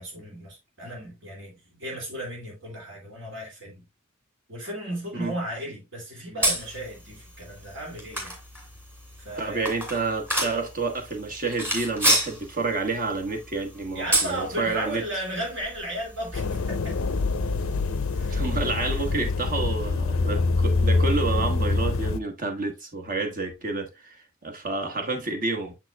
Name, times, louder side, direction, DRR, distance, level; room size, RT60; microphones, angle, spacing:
voice 1, 0.0-3.8 4.5-8.3 9.2-9.9 13.9-17.0 18.1-18.4, right 1 dB, 65° right, 2.6 m, -35 dB
sound 1, 6.4-19.1, right 1 dB, 10° right, 2.4 m, -32 dB
voice 2, 9.4-15.0 18.3-25.7, right 3 dB, 45° right, 1.3 m, -29 dB
sound 2, 16.3-22.2, left 3 dB, 85° left, 0.5 m, -25 dB
6.9 x 6.0 x 2.3 m
head